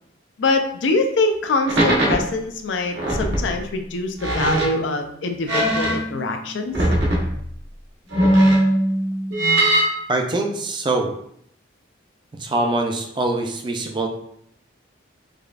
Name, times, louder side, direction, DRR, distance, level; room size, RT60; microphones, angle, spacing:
voice 1, 0.4-6.7, left 3 dB, 80° left, 5 dB, 0.5 m, -24 dB
sound 1, 1.7-2.2 2.9-3.5 4.2-4.9 5.5-6.3 6.7-7.4 8.1-10.0, right 1 dB, 80° right, 1.1 m, -19 dB
voice 2, 10.1-11.1 12.3-14.1, right 2 dB, 25° right, 2 dB, 0.4 m, -23 dB
4.8 x 2.3 x 2.4 m, 0.69 s
head